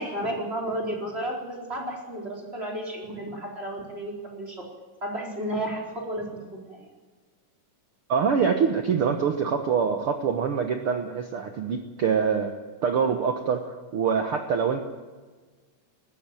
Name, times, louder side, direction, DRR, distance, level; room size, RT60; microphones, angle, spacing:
voice 1, 0.0-4.7 5.0-6.9, right 1 dB, 20° right, -1 dB, 4.6 m, -32 dB
voice 2, 8.1-12.5 12.8-14.8, right 6 dB, 55° right, 6 dB, 1.7 m, -25 dB
20.0 x 15.5 x 9.1 m, 1.4 s
omnidirectional pair, 3.6 m